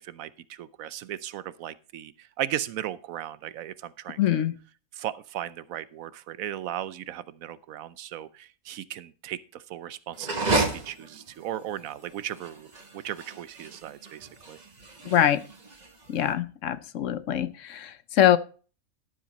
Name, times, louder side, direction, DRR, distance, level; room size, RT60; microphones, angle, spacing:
voice 1, 0.0-4.5 4.9-14.6, right 11 dB, 80° right, 1.1 m, -37 dB
voice 2, 4.2-4.6 15.1-15.4 16.1-18.4, left 10 dB, 70° left, 1.0 m, -23 dB
sound 1, 10.1-16.3, right 3 dB, 30° right, 1.5 m, -32 dB
12.5 x 7.5 x 4.1 m
omnidirectional pair, 1.4 m